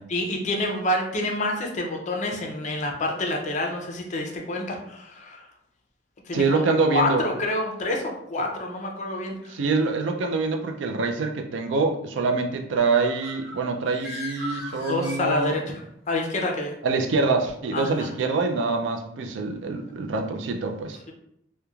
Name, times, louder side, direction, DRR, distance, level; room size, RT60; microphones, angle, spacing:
voice 1, 0.1-5.5 6.3-9.6 14.8-16.8 17.7-18.1, left 1 dB, 40° left, 1 dB, 0.5 m, -28 dB
voice 2, 6.3-7.2 9.5-15.6 16.8-21.0, right 3 dB, 85° right, 4 dB, 0.4 m, -25 dB
Bird, 12.8-15.8, left 1 dB, 15° right, 1.2 m, -39 dB
3.0 x 2.1 x 2.3 m, 0.74 s
head